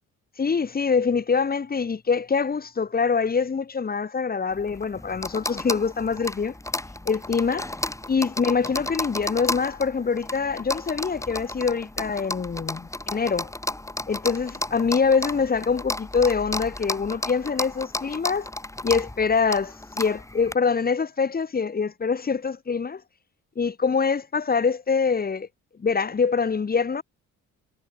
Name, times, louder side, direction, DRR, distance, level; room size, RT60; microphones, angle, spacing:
voice 1, 0.4-6.5 7.0-7.7 8.1-13.5 14.1-18.5 18.8-23.0 23.5-25.5 25.8-27.0, left 5 dB, 30° left, 1.6 m, -24 dB
sound 1, 4.5-20.5, left 1 dB, 10° left, 3.2 m, -33 dB
cardioid pair, 90°, 30 cm